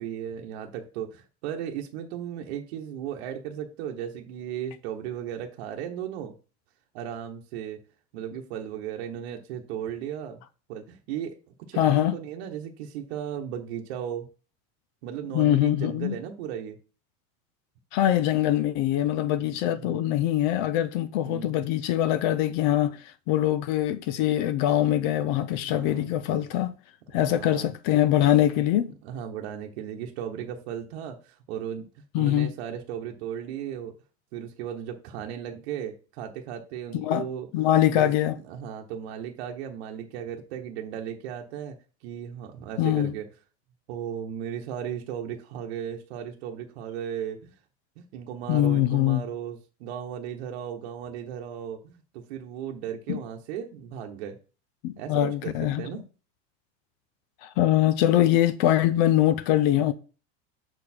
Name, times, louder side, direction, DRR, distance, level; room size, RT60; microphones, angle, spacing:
voice 1, 0.0-6.3 6.9-7.8 8.1-10.4 10.7-11.4 11.7-14.3 15.0-16.8 19.4-20.1 21.2-21.5 25.6-26.1 27.1-27.7 29.0-33.9 34.3-37.5 37.9-41.8 42.0-43.3 43.9-47.5 48.0-54.4 55.0-56.0 59.7-59.8, right 9 dB, 70° right, 1.0 m, -36 dB
voice 2, 11.8-12.1 15.3-16.2 17.9-26.7 27.1-28.9 32.1-32.5 37.0-37.2 37.5-38.3 42.8-43.1 48.5-49.2 53.1-53.2 54.8-55.8 57.4-59.9, left 12 dB, 45° left, 0.5 m, -23 dB
6.5 x 4.3 x 4.3 m
supercardioid pair, 170°, 33 cm